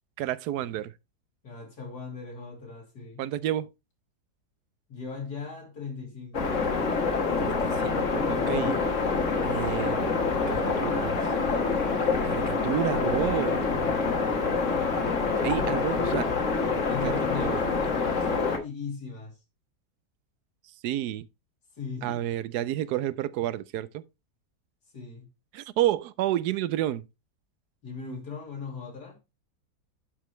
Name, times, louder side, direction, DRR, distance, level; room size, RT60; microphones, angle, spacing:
voice 1, 0.2-0.9 3.2-3.7 7.4-8.7 9.4-11.2 12.2-13.7 15.4-16.3 17.0-17.6 20.8-21.2 22.0-24.0 25.5-27.0, right 13 dB, 80° right, 1.1 m, -30 dB
voice 2, 1.4-3.3 4.9-6.5 8.1-8.9 15.6-16.2 16.9-19.4 21.8-22.2 24.9-25.3 27.8-29.2, left 5 dB, 75° left, 3.3 m, -39 dB
sound 1, 6.3-18.6, left 4 dB, 50° left, 1.6 m, -26 dB
11.0 x 5.0 x 3.1 m
omnidirectional pair, 1.7 m